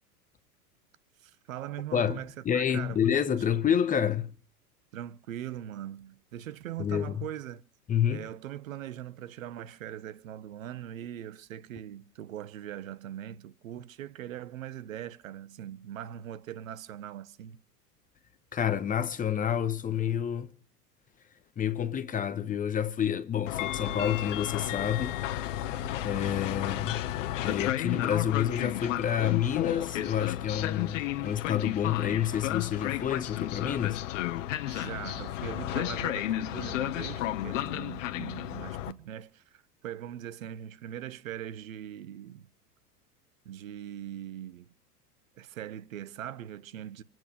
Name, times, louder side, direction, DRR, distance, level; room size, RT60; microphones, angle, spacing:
voice 1, 1.2-3.4 4.9-7.6 8.1-17.6 25.6-25.9 34.7-42.5 43.4-44.7 45.3-47.0, right 11 dB, 55° right, 1.1 m, -41 dB
voice 2, 1.9-4.3 6.8-7.2 7.9-8.3 18.5-20.5 21.6-25.7 26.0-27.0 27.4-34.0, left 9 dB, 15° left, 0.9 m, -29 dB
Train, 23.5-38.9, left 13 dB, 50° left, 1.1 m, -33 dB
27.0 x 9.3 x 5.1 m
figure-of-eight pair, 90°, 47 cm